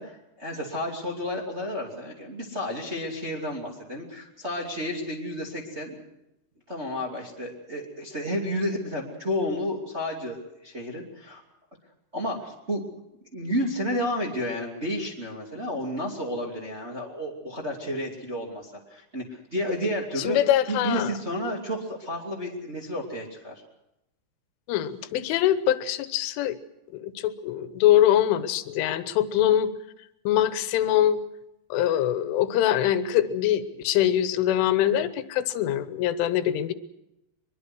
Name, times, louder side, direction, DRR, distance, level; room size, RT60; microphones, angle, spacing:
voice 1, 0.0-6.0 6.7-11.4 12.1-12.8 13.3-20.4 20.7-23.6, equal, 20° right, -1 dB, 1.9 m, -31 dB
voice 2, 20.2-21.1 24.7-26.6 26.9-29.7 30.3-31.2 31.7-36.7, left 11 dB, 90° left, 12 dB, 3.6 m, -23 dB
23.0 x 22.5 x 6.1 m, 0.88 s
omnidirectional pair, 5.5 m